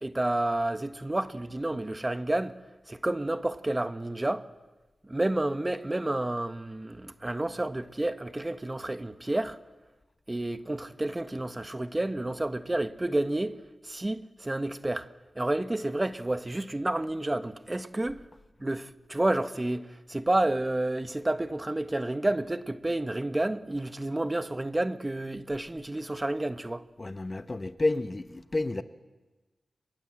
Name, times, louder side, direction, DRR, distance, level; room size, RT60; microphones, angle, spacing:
voice 1, 0.0-2.5 2.9-4.5 5.0-9.6 10.3-13.6 13.8-15.1 15.3-18.2 18.6-26.8, right 1 dB, 25° right, 1.4 m, -30 dB
voice 2, 27.0-28.8, left 2 dB, 35° left, 1.3 m, -30 dB
27.5 x 23.0 x 7.8 m
cardioid pair, 40°, 0 cm